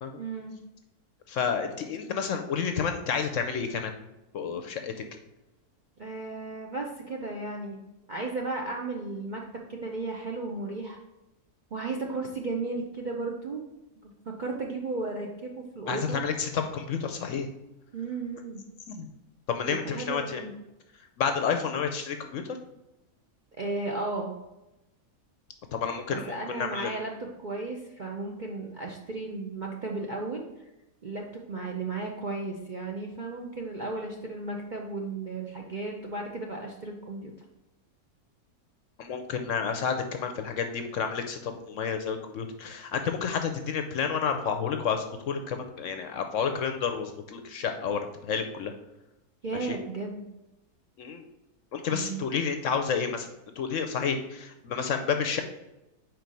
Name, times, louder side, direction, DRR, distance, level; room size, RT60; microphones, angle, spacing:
voice 1, 0.2-0.5 6.0-7.8 8.1-9.4 9.7-11.0 11.7-13.6 14.3-16.2 17.9-18.6 19.7-20.5 23.6-24.4 26.1-30.5 31.0-37.3 49.4-50.2 51.9-52.2, right 3 dB, 50° right, 0 dB, 0.5 m, -34 dB
voice 2, 1.3-3.9 4.3-4.9 15.9-17.5 18.9-19.1 19.5-20.4 21.2-22.4 25.7-26.9 39.0-48.7 49.6-49.8 51.0-51.2 51.7-53.3 53.6-55.4, left 6 dB, 65° left, 6 dB, 0.8 m, -30 dB
4.6 x 4.5 x 5.2 m, 0.95 s
omnidirectional pair, 1.6 m